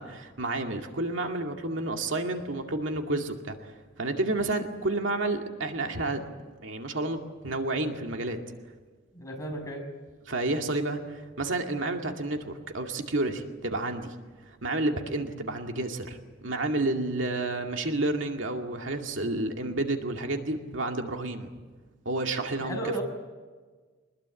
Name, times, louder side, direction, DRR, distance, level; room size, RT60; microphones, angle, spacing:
voice 1, 0.0-6.2 6.6-7.2 7.4-8.4 10.3-14.1 14.6-21.5 22.1-22.8, right 2 dB, 75° right, 3 dB, 2.3 m, -30 dB
voice 2, 9.1-9.8 22.5-23.0, right 1 dB, 15° left, 1 dB, 6.1 m, -34 dB
24.0 x 21.0 x 8.4 m, 1.4 s
head